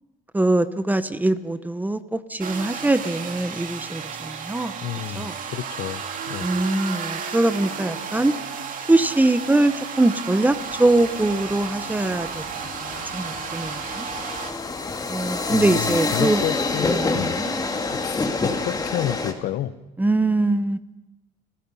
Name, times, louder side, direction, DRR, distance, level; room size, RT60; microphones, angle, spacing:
voice 1, 0.3-4.7 5.2-5.3 6.4-8.3 8.9-12.4 13.1-14.1 15.1-16.4 16.9-17.6 20.0-20.8, right 2 dB, 10° right, 13 dB, 0.9 m, -22 dB
sound 1, 2.4-14.5, right 6 dB, 55° right, 2.3 m, -33 dB
voice 2, 4.8-6.5 15.5-17.4 17.9-19.7, left 12 dB, 75° left, 13 dB, 1.1 m, -30 dB
sound 2, 10.5-19.3, left 3 dB, 20° left, 2.0 m, -28 dB
30.0 x 15.5 x 5.6 m, 0.96 s
cardioid pair, 110°, 17 cm